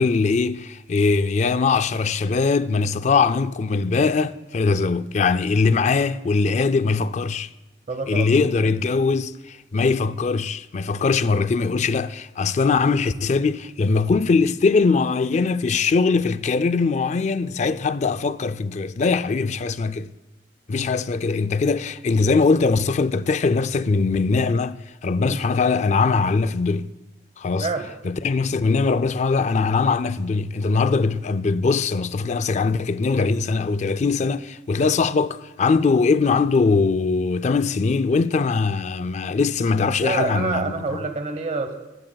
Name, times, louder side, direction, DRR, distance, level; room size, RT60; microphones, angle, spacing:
voice 1, 0.0-7.5 8.1-20.1 20.7-26.9 27.4-27.7 28.0-40.9, left 4 dB, 40° left, 0.4 m, -21 dB
voice 2, 7.9-8.7 25.2-25.4 27.6-27.9 40.0-41.8, right 3 dB, 40° right, 1.0 m, -27 dB
19.0 x 15.5 x 2.3 m
head